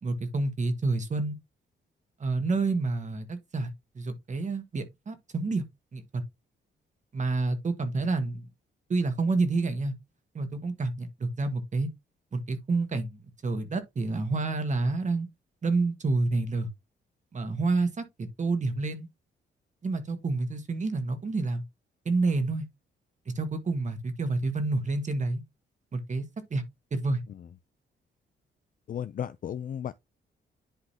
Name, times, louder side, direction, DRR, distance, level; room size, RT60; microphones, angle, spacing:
voice 1, 0.0-1.4 2.2-5.6 5.9-6.2 7.1-8.5 8.9-9.9 10.3-11.9 12.3-15.3 15.6-16.7 17.3-19.1 19.8-21.6 22.0-22.7 23.3-25.4 25.9-26.2 26.5-26.6 26.9-27.2, right 3 dB, 40° right, 1.6 m, -29 dB
voice 2, 28.9-29.9, left 9 dB, 45° left, 0.4 m, -34 dB
10.5 x 3.9 x 2.8 m
cardioid pair, 105°, 20 cm